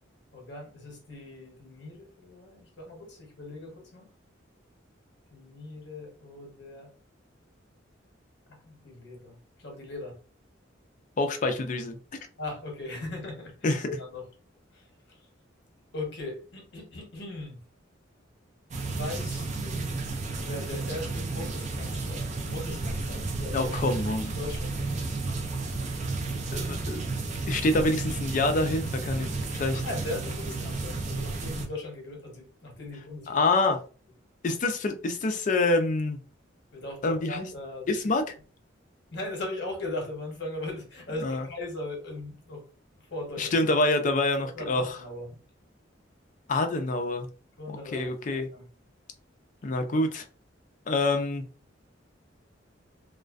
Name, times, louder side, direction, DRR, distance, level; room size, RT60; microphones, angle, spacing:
voice 1, 0.3-4.0 5.3-6.9 8.5-10.2 12.4-14.3 14.7-15.3 15.9-17.6 18.8-20.0 20.4-23.7 24.4-24.9 29.8-33.4 36.7-37.9 39.1-42.6 43.0-43.5 44.4-45.4 47.6-48.7, left 2 dB, 60° left, 1 dB, 0.9 m, -39 dB
voice 2, 11.2-12.0 13.6-13.9 23.5-24.3 26.5-27.0 27.5-29.8 33.3-33.8 34.4-36.2 37.0-37.5 37.9-38.2 41.2-41.4 43.4-45.0 46.5-47.3 47.7-48.5 49.6-50.2 50.9-51.4, left 2 dB, 40° left, 7 dB, 0.4 m, -26 dB
sound 1, 18.7-31.7, right 3 dB, 40° right, 0.4 m, -32 dB
2.4 x 2.1 x 2.4 m, 0.38 s
head